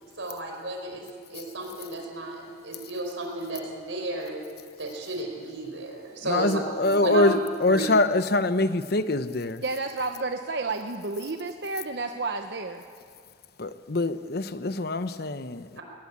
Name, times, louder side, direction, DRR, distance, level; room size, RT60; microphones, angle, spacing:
voice 1, 0.2-4.4 4.8-7.3 7.6-7.9 15.8-15.9, right 2 dB, 90° right, 2 dB, 5.0 m, -33 dB
voice 2, 6.3-7.3 7.6-9.6 13.6-15.7, left 2 dB, 55° left, 12 dB, 0.9 m, -24 dB
voice 3, 9.6-12.8, right 3 dB, 60° right, 5 dB, 1.0 m, -31 dB
20.5 x 19.5 x 8.6 m, 2.1 s
head